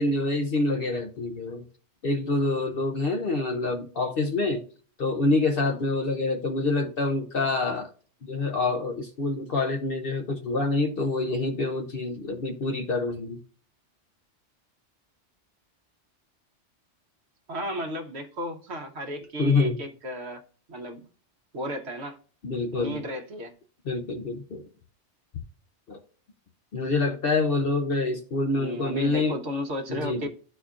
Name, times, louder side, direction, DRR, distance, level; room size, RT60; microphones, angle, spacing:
voice 1, 0.0-1.6 2.0-4.6 5.0-7.9 8.2-13.4 19.4-19.8 22.4-23.0 23.9-24.6 25.9-26.0 26.7-29.4 29.9-30.2, left 3 dB, 55° left, 0.9 m, -26 dB
voice 2, 17.5-20.4 20.7-21.0 21.5-22.2 22.7-23.5 28.5-30.3, equal, 65° right, 1.1 m, -34 dB
12.5 x 4.3 x 2.4 m
omnidirectional pair, 1.2 m